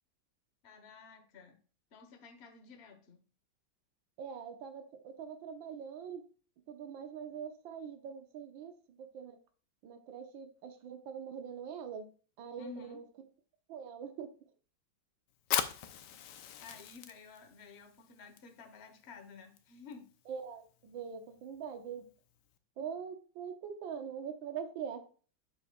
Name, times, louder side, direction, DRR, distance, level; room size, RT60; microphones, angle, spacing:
voice 1, 0.6-1.6 1.9-3.2 12.6-13.0 16.6-20.1, left 5 dB, 40° left, 1.2 m, -52 dB
voice 2, 4.2-6.2 6.7-9.4 9.8-12.1 12.4-13.0 13.7-14.3 20.3-22.1 22.8-25.0, right 7 dB, 75° right, 1.7 m, -43 dB
Fire, 15.4-22.6, left 10 dB, 70° left, 1.3 m, -42 dB
8.2 x 6.8 x 2.3 m
omnidirectional pair, 2.1 m